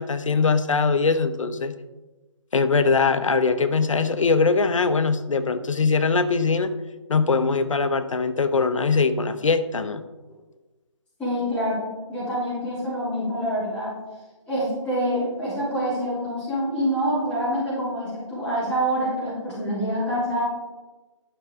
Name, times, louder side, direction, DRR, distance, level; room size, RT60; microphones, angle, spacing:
voice 1, 0.0-1.7 2.5-6.7 7.1-10.0, left 4 dB, 75° left, 11 dB, 0.8 m, -21 dB
voice 2, 11.2-13.9 14.5-20.4, equal, 5° left, -13 dB, 2.9 m, -26 dB
12.0 x 6.1 x 3.6 m, 1.2 s
hypercardioid pair, 165°, 17 cm